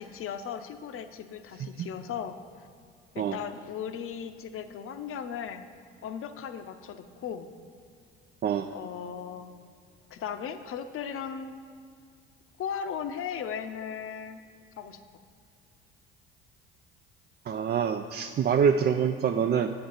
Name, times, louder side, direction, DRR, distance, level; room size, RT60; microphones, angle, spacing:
voice 1, 0.0-2.4 3.1-5.7 6.0-7.5 8.7-9.5 10.1-11.5 12.6-14.4 14.8-15.0, left 7 dB, 50° left, 10 dB, 0.7 m, -37 dB
voice 2, 8.4-8.7 17.5-19.7, right 7 dB, 35° right, 5 dB, 0.4 m, -25 dB
8.6 x 7.8 x 4.0 m, 2.3 s
hypercardioid pair, 65°, 29 cm